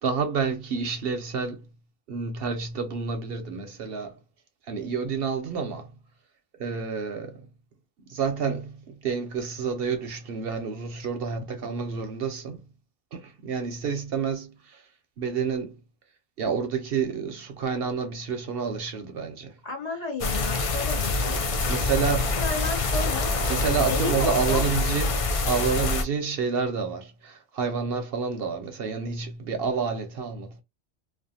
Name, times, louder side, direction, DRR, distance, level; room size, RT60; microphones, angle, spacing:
voice 1, 0.0-1.6 2.1-4.2 4.7-5.9 6.6-7.4 8.1-12.6 13.1-14.8 15.2-15.8 16.4-19.6 21.7-22.4 23.5-30.6, right 6 dB, 65° right, 0.7 m, -29 dB
voice 2, 19.6-21.7 21.9-22.0 22.4-23.3 23.6-24.7, left 2 dB, 40° left, 0.7 m, -33 dB
sound 1, 20.2-26.0, left 3 dB, 65° left, 0.3 m, -26 dB
2.5 x 2.2 x 2.7 m
omnidirectional pair, 1.2 m